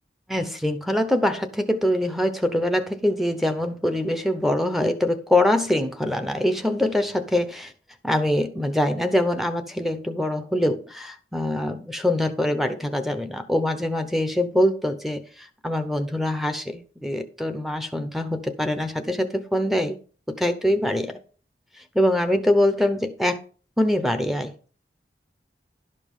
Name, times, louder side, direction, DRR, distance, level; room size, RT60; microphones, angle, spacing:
voice 1, 0.3-7.7 8.0-20.0 20.3-21.1 21.9-23.4 23.8-24.5, left 1 dB, ahead, 0.7 m, -24 dB
11.5 x 5.2 x 5.4 m
head